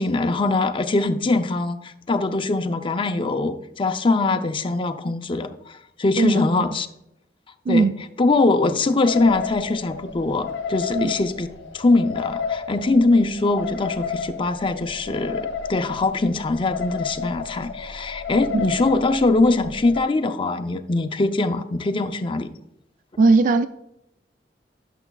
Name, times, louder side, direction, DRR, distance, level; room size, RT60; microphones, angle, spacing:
voice 1, 0.0-6.9 7.7-7.9 8.2-11.5 11.7-22.5, left 2 dB, 30° left, 8 dB, 0.5 m, -22 dB
sound 1, 9.1-20.0, left 6 dB, 80° left, 0.7 m, -32 dB
voice 2, 23.2-23.7, right 3 dB, 50° right, 11 dB, 0.3 m, -18 dB
11.0 x 6.9 x 2.3 m, 0.81 s
head